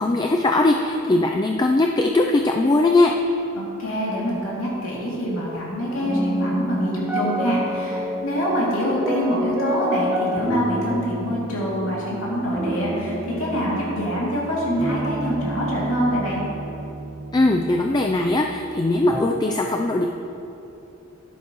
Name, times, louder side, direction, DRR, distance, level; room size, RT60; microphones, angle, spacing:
voice 1, 0.0-3.1 17.3-20.1, left 2 dB, 20° left, 2 dB, 0.3 m, -20 dB
voice 2, 3.6-16.4, equal, 80° left, -5 dB, 2.4 m, -25 dB
sound 1, 5.4-19.2, equal, 10° right, 1.0 m, -29 dB
13.0 x 10.0 x 3.0 m, 2.9 s
head